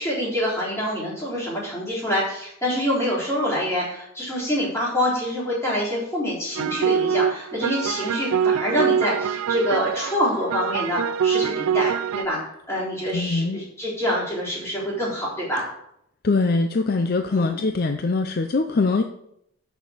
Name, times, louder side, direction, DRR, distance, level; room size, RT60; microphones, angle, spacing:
voice 1, 0.0-15.6 17.3-17.6, equal, 15° left, -7 dB, 3.9 m, -26 dB
sound 1, 6.5-12.2, right 8 dB, 80° right, 0.3 m, -24 dB
voice 2, 13.1-13.6 16.2-19.0, left 3 dB, 45° left, 7 dB, 0.5 m, -22 dB
6.3 x 6.3 x 7.2 m, 0.74 s
head